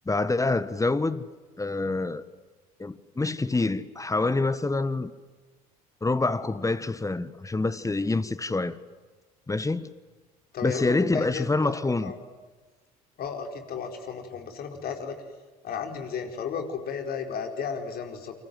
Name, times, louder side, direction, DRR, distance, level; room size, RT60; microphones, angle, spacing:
voice 1, 0.0-1.3 1.6-2.2 2.8-5.1 6.0-8.8 9.5-9.9 10.6-12.1, left 3 dB, 15° left, 1.5 m, -26 dB
voice 2, 10.5-11.8 12.0-12.2 13.2-15.2 15.6-18.3, left 6 dB, 55° left, 4.5 m, -34 dB
29.0 x 25.0 x 7.8 m
hypercardioid pair, 55°, 18 cm